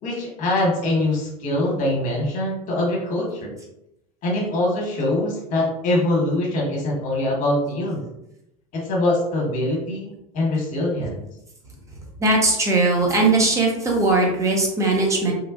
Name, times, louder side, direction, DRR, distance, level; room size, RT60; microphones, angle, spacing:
voice 1, 0.0-3.5 4.2-8.1 8.7-11.2, left 1 dB, 45° left, -3 dB, 1.3 m, -23 dB
voice 2, 12.2-15.3, right 2 dB, 15° right, -1 dB, 0.8 m, -19 dB
3.0 x 2.4 x 2.4 m, 0.84 s
supercardioid pair, 115°, 19 cm